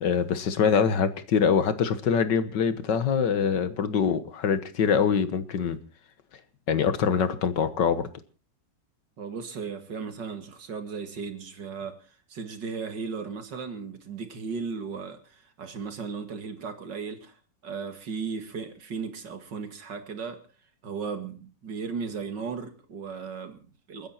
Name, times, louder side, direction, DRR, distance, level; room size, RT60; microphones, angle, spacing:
voice 1, 0.0-5.8 6.7-8.0, left 6 dB, 70° left, 1.9 m, -24 dB
voice 2, 9.2-12.0 12.3-17.4 17.6-20.4 20.8-24.1, right 5 dB, 65° right, 2.6 m, -36 dB
29.0 x 9.9 x 4.3 m
omnidirectional pair, 2.0 m